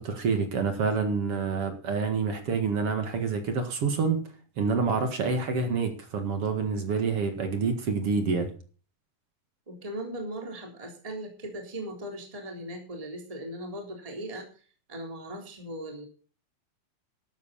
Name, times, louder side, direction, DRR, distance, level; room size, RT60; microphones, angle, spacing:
voice 1, 0.0-4.2 4.6-8.5, right 5 dB, 55° right, 1.7 m, -27 dB
voice 2, 9.7-14.6 14.9-16.1, right 1 dB, 10° right, 3.0 m, -38 dB
13.0 x 12.0 x 4.2 m
omnidirectional pair, 5.3 m